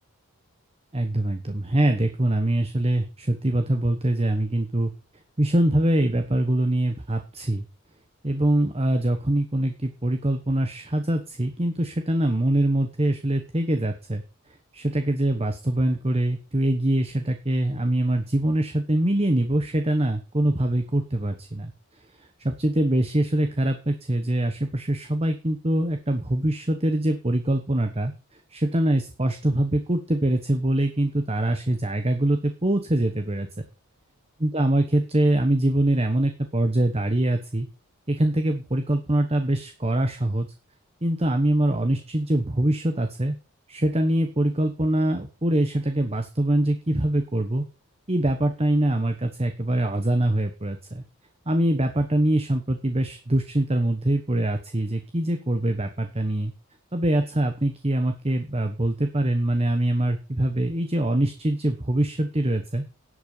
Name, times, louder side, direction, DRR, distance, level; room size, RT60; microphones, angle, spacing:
voice 1, 0.9-4.9 5.4-7.6 8.2-14.2 14.7-21.7 22.2-33.5 34.4-37.7 38.1-40.5 41.0-43.4 43.7-47.6 48.1-51.0 51.5-56.5 56.9-62.8, right 1 dB, 25° right, 7 dB, 1.1 m, -24 dB
11.5 x 8.1 x 5.6 m, 0.32 s
head